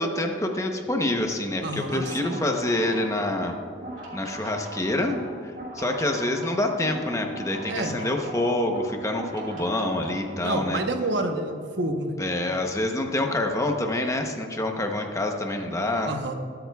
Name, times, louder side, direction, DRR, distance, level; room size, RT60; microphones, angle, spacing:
voice 1, 0.0-3.6 4.1-5.2 5.4-10.8 12.2-16.2, left 1 dB, 15° left, 3 dB, 0.8 m, -27 dB
voice 2, 1.6-2.4 7.6-7.9 10.4-12.2 16.0-16.3, right 2 dB, 80° right, 5 dB, 1.0 m, -28 dB
sound 1, 1.9-10.8, right 1 dB, 45° right, 2.4 m, -40 dB
21.5 x 8.8 x 2.3 m, 2.2 s
head